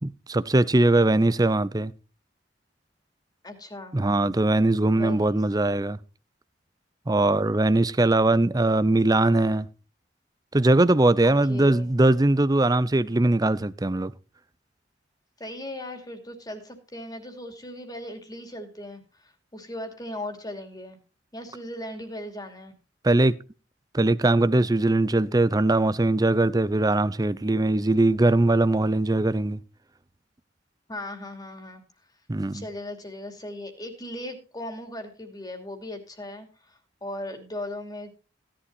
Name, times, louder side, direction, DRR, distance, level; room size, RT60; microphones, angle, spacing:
voice 1, 0.0-1.9 3.9-6.0 7.1-9.7 10.5-14.1 23.0-23.3 23.9-29.6 32.3-32.6, right 2 dB, 20° right, 0.6 m, -21 dB
voice 2, 3.4-4.0 4.9-5.4 11.2-12.0 15.4-21.0 21.3-22.7 30.9-31.8 32.5-38.1, left 1 dB, 20° left, 2.7 m, -38 dB
16.5 x 11.5 x 2.6 m
head